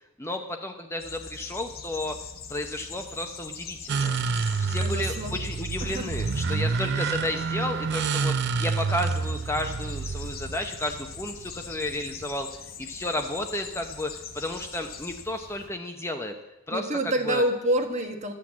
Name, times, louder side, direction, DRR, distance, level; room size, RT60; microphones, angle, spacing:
voice 1, 0.2-2.2 2.5-4.2 4.6-12.5 12.8-16.3 16.7-17.4, left 1 dB, 10° left, 4 dB, 0.9 m, -32 dB
sound 1, 1.0-15.7, left 6 dB, 45° left, 1.2 m, -43 dB
sound 2, 3.9-12.2, right 5 dB, 50° right, 0.5 m, -28 dB
voice 2, 4.8-5.3 5.8-6.1 16.7-18.3, right 1 dB, 35° right, 5 dB, 1.4 m, -27 dB
13.5 x 8.3 x 7.4 m, 0.94 s
head